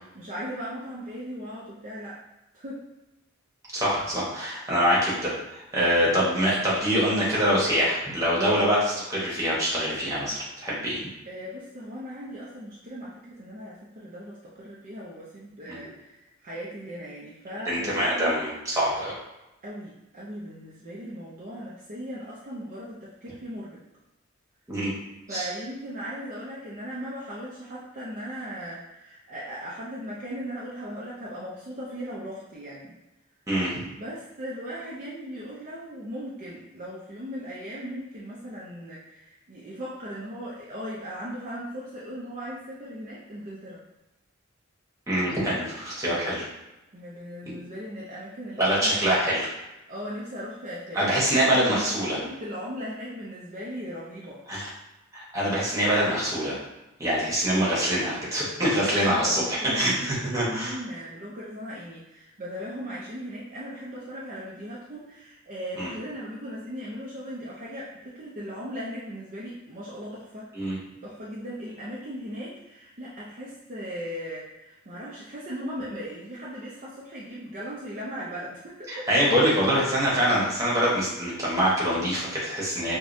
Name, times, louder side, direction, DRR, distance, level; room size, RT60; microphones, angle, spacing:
voice 1, 0.1-2.2 2.5-2.9 11.3-18.4 19.6-23.8 25.3-32.9 34.0-43.8 46.9-49.3 49.9-54.4 58.8-70.5 71.0-79.1, equal, 40° right, -7 dB, 0.5 m, -38 dB
voice 2, 3.7-11.0 15.7-15.8 17.6-19.1 24.7-24.9 25.3-25.5 33.5-33.8 45.1-46.4 48.6-49.5 50.9-52.2 54.5-54.7 55.1-56.6 57.0-60.7 65.8-65.9 70.5-70.8 78.9-83.0, equal, 15° right, -6 dB, 1.1 m, -24 dB
4.9 x 2.2 x 2.6 m, 0.99 s
head